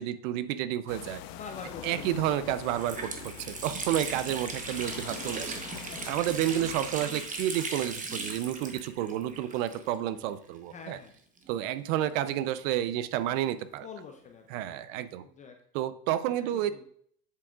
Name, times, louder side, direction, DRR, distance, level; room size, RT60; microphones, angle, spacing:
voice 1, 0.0-1.2 1.8-3.1 3.4-5.6 6.1-11.0 11.5-13.9 14.5-15.2 15.7-16.8, right 12 dB, 55° right, 14 dB, 0.6 m, -30 dB
sound 1, 0.9-7.1, left 11 dB, 45° left, 0.7 m, -44 dB
voice 2, 1.3-2.3 5.7-6.2 6.6-6.7 10.7-11.2 13.8-14.7 15.2-15.6 16.3-16.8, left 5 dB, 20° left, 4 dB, 0.3 m, -46 dB
Water tap faucet, 2.0-2.1 2.5-10.2 10.4-10.5 11.4-12.9, right 3 dB, 15° right, 0.9 m, -38 dB
7.6 x 7.0 x 2.4 m, 0.63 s
hypercardioid pair, 110°, 49 cm